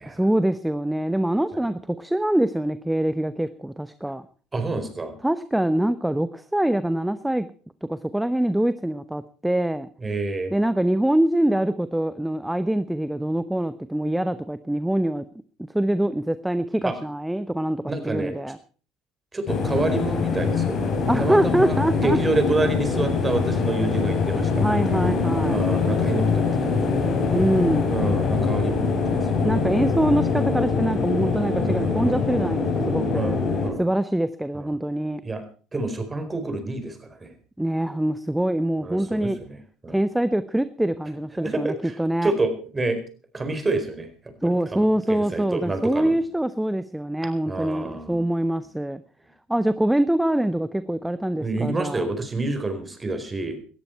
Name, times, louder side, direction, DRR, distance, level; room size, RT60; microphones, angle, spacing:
voice 1, 0.1-4.2 5.2-7.5 7.9-9.9 10.5-15.3 15.7-18.6 21.1-22.2 24.6-25.7 27.3-27.9 29.4-33.4 33.8-35.2 37.6-39.4 39.9-42.3 44.4-49.0 49.5-52.1, right 1 dB, 5° right, 13 dB, 0.9 m, -24 dB
voice 2, 4.5-5.1 10.0-10.5 16.8-17.0 17.9-18.4 19.3-20.8 21.2-25.0 25.5-26.7 27.9-29.2 31.5-32.5 33.1-33.9 34.5-34.7 35.2-35.4 35.7-37.3 38.8-39.6 39.8-40.0 41.3-41.9 42.2-43.0 43.3-44.1 44.4-46.1 47.5-48.2 51.4-53.6, right 2 dB, 20° right, 8 dB, 4.4 m, -28 dB
sound 1, 19.5-33.7, left 4 dB, 50° left, 4.4 m, -23 dB
18.5 x 13.5 x 4.6 m, 0.41 s
hypercardioid pair, 70°, 0 cm